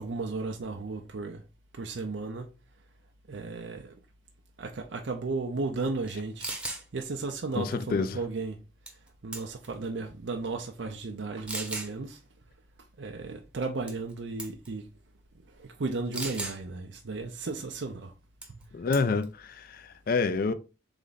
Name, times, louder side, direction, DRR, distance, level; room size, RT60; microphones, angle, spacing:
voice 1, 0.0-1.4 1.7-2.5 3.3-4.0 4.6-8.6 9.2-12.2 13.0-14.9 15.5-18.1 18.5-18.6, right 3 dB, 70° right, 0.6 m, -34 dB
sound 1, 6.1-6.2 6.4-6.8 8.9-9.1 9.3-9.7 10.4-10.5 11.5-11.9 13.9-14.1 14.4-14.7 16.1-16.6 18.4-18.6 18.9-19.2, right 2 dB, 5° right, 0.8 m, -36 dB
voice 2, 7.5-8.2 18.7-20.5, left 4 dB, 50° left, 0.4 m, -28 dB
3.7 x 3.4 x 4.0 m
head